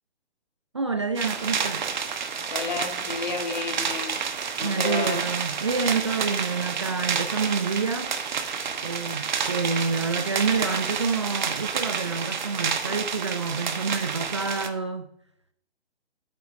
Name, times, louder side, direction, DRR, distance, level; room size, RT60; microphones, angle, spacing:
voice 1, 0.7-1.8 4.6-8.1 8.8-15.1, right 4 dB, 30° right, 0.4 m, -28 dB
sound 1, 1.2-14.7, right 6 dB, 45° right, 1.1 m, -29 dB
voice 2, 2.5-4.2 4.6-5.2, left 4 dB, 45° left, 1.5 m, -31 dB
13.5 x 8.8 x 2.7 m
figure-of-eight pair, 135°, 32 cm